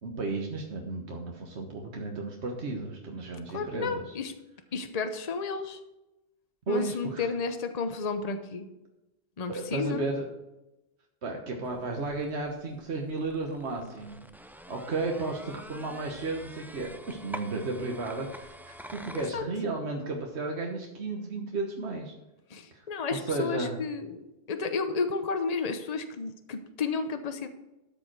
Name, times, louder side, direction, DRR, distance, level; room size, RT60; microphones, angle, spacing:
voice 1, 0.0-4.2 6.7-7.3 9.5-10.2 11.2-14.2 14.7-22.1 22.7-22.8 23.1-23.8, right 3 dB, 80° right, 1 dB, 1.5 m, -33 dB
voice 2, 3.5-4.3 4.7-5.8 6.7-8.7 9.4-10.1 19.1-19.4 22.5-27.5, left 4 dB, 40° left, 8 dB, 0.9 m, -32 dB
sound 1, 11.6-19.3, equal, 5° right, 0.3 m, -47 dB
13.0 x 5.3 x 6.0 m, 0.96 s
omnidirectional pair, 1.1 m